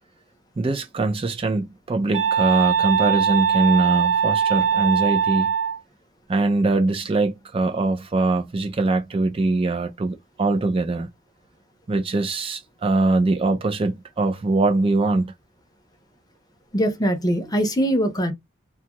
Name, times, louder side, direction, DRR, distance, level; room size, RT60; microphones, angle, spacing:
voice 1, 0.6-5.5 6.3-11.1 11.9-15.3, right 2 dB, 30° right, 0.4 m, -22 dB
sound 1, 2.1-5.8, right 7 dB, 75° right, 0.6 m, -21 dB
voice 2, 16.7-18.3, equal, 20° left, 0.6 m, -22 dB
2.6 x 2.3 x 2.8 m
head